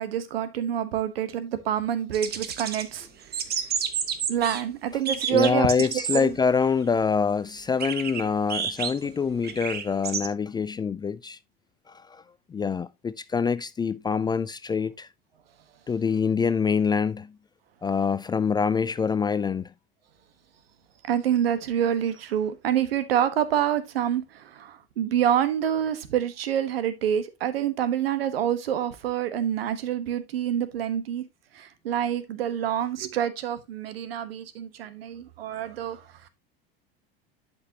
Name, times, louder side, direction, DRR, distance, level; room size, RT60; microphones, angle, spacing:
voice 1, 0.0-3.1 4.3-6.3 9.0-9.1 21.0-31.2 31.5-36.3, right 10 dB, 85° right, 1.2 m, -27 dB
sound 1, 2.1-2.9 3.2-4.6 5.0-6.2 6.7-6.8 7.8-10.3, right 7 dB, 35° right, 1.2 m, -30 dB
voice 2, 5.3-11.4 11.9-12.2 12.5-15.1 15.9-17.3 17.8-19.7, left 5 dB, 15° left, 0.3 m, -25 dB
11.5 x 5.3 x 2.8 m
hypercardioid pair, 90°, 29 cm